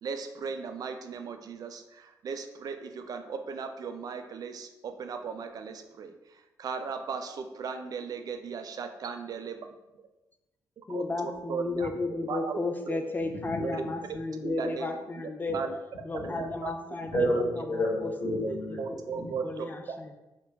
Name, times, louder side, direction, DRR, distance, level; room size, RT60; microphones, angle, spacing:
voice 1, 0.0-6.1 6.6-9.6 10.9-11.9 12.3-12.6 12.9-13.0 13.6-13.8 14.4-15.8 16.3-16.7 18.4-19.7, right 5 dB, 60° right, 7 dB, 0.3 m, -37 dB
voice 2, 10.9-15.6 16.0-17.1 18.0-18.1 18.9-20.1, left 2 dB, 25° left, 5 dB, 0.4 m, -33 dB
voice 3, 13.2-13.9 16.1-16.3 17.0-18.8 19.1-19.4, equal, 55° left, -4 dB, 1.2 m, -30 dB
3.0 x 2.2 x 3.3 m, 1.0 s
cardioid pair, 85°, 7 cm